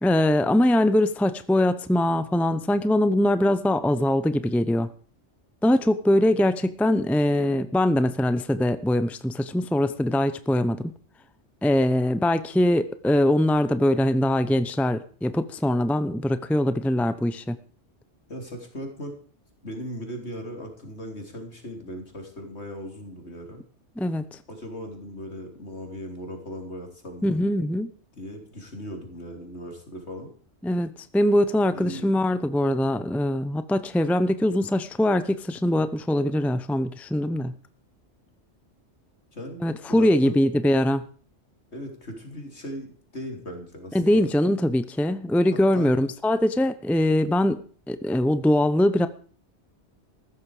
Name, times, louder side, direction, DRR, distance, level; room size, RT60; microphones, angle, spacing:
voice 1, 0.0-4.9 5.6-10.8 11.6-17.6 24.0-24.4 27.2-27.9 30.6-37.5 39.6-41.1 43.9-47.6 47.9-49.1, left 1 dB, ahead, 12 dB, 0.7 m, -22 dB
voice 2, 18.3-19.2 19.6-23.6 24.5-27.4 28.1-30.3 31.7-32.1 39.3-39.6 39.9-40.3 41.7-44.3 45.7-46.0, equal, 65° left, 4 dB, 4.0 m, -38 dB
15.0 x 13.5 x 5.0 m, 0.43 s
omnidirectional pair, 1.2 m